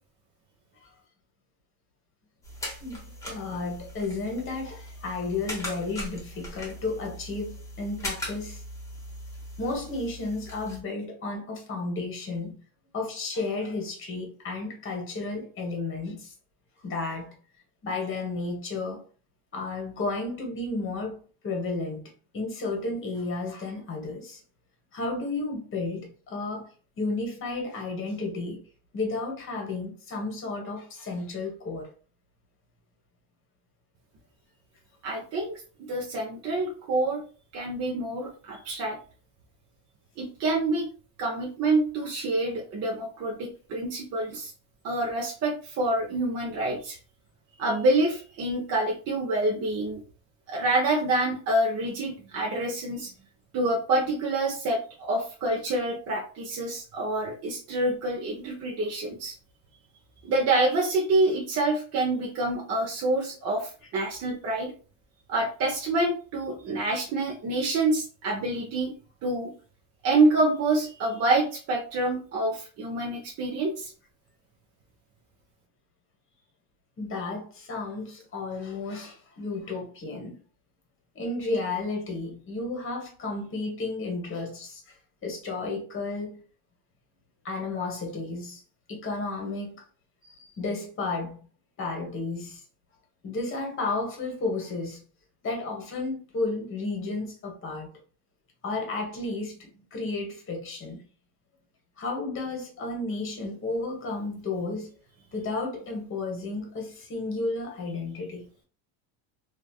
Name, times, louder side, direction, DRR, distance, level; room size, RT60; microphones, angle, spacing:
sound 1, 2.4-10.8, equal, 5° left, 1.0 m, -40 dB
voice 1, 2.8-8.6 9.6-12.6 12.9-16.3 16.8-17.3 17.8-19.0 19.5-21.2 21.4-22.0 22.3-24.4 24.9-26.7 27.0-28.6 28.9-31.9 77.0-80.4 81.1-84.8 85.2-86.4 87.4-88.6 88.9-89.8 90.2-91.5 91.8-92.6 93.2-95.0 95.4-97.9 98.6-101.0 102.0-104.9 105.3-108.4, left 3 dB, 30° left, 1.2 m, -32 dB
voice 2, 35.0-37.2 37.5-39.0 40.2-40.9 41.2-44.5 44.8-47.0 47.6-50.0 50.5-53.1 53.5-59.3 60.2-64.7 65.3-68.9 69.2-69.5 70.0-73.9, right 2 dB, 35° right, 0.7 m, -27 dB
3.1 x 2.5 x 2.3 m
cardioid pair, 135°, 43 cm